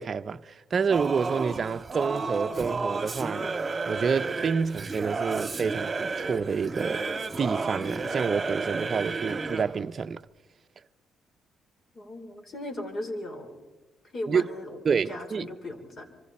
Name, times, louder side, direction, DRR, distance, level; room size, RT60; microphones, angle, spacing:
voice 1, 0.0-3.6 3.9-7.0 7.4-10.2 14.3-14.5 14.8-15.5, right 6 dB, 45° right, 0.6 m, -28 dB
Singing / Musical instrument, 0.9-9.8, right 3 dB, 25° right, 2.2 m, -32 dB
voice 2, 11.9-13.6 14.1-16.0, left 1 dB, 40° left, 4.3 m, -37 dB
25.5 x 24.5 x 4.3 m
cardioid pair, 90°, 0 cm